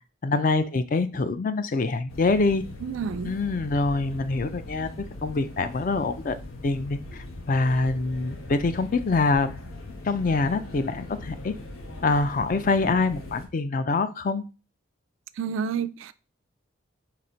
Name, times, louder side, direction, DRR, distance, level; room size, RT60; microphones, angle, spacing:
voice 1, 0.2-2.6 3.2-4.9 5.2-6.4 6.6-9.5 10.0-11.5 12.0-14.4, left 3 dB, 40° left, 0.4 m, -25 dB
sound 1, 2.1-13.5, left 2 dB, 90° left, 1.0 m, -40 dB
voice 2, 2.8-3.3 15.4-16.1, right 6 dB, 70° right, 0.3 m, -29 dB
4.1 x 2.8 x 4.3 m
head